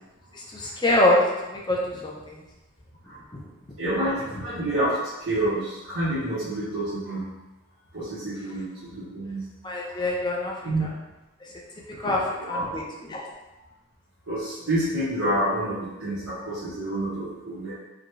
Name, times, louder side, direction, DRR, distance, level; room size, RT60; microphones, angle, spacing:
voice 1, 0.5-1.2 1.5-2.4 9.6-10.5 10.8-10.9 12.0-12.2 12.5-13.2, left 1 dB, 20° left, -2 dB, 0.6 m, -24 dB
voice 2, 3.8-5.0 5.3-7.3 7.9-9.5 9.9-10.0 10.6-10.9 12.0-12.2 12.5-12.7 14.3-17.7, right 1 dB, 85° right, -12 dB, 1.2 m, -28 dB
5.0 x 2.4 x 3.1 m, 1.1 s
head